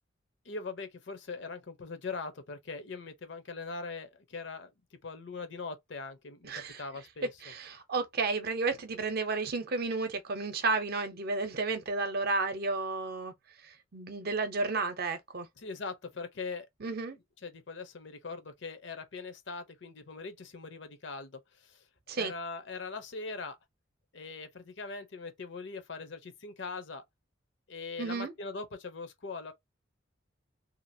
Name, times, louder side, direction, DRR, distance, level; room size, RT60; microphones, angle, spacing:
voice 1, 0.4-4.7 5.0-6.5 6.8-7.3 15.6-16.7 17.4-21.8 22.1-23.6 24.1-27.0 27.7-29.5, left 4 dB, 65° left, 0.7 m, -41 dB
voice 2, 6.4-6.8 7.4-13.3 13.6-15.5 16.8-17.2 22.1-22.3 28.0-28.3, right 3 dB, 50° right, 0.6 m, -32 dB
2.8 x 2.4 x 2.7 m
head